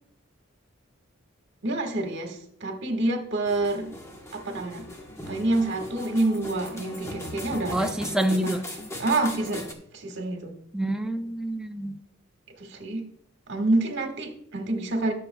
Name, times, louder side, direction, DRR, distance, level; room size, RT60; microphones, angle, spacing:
voice 1, 1.6-3.9 4.3-4.9 5.3-8.6 9.0-9.7 9.9-10.6 12.6-13.1 13.5-15.1, right 2 dB, 55° right, 4 dB, 1.6 m, -27 dB
sound 1, 3.4-9.7, left 1 dB, 15° left, 1.2 m, -39 dB
voice 2, 7.7-8.6 10.7-12.0, right 1 dB, 5° right, 5 dB, 0.6 m, -27 dB
19.0 x 6.8 x 2.3 m, 0.67 s
head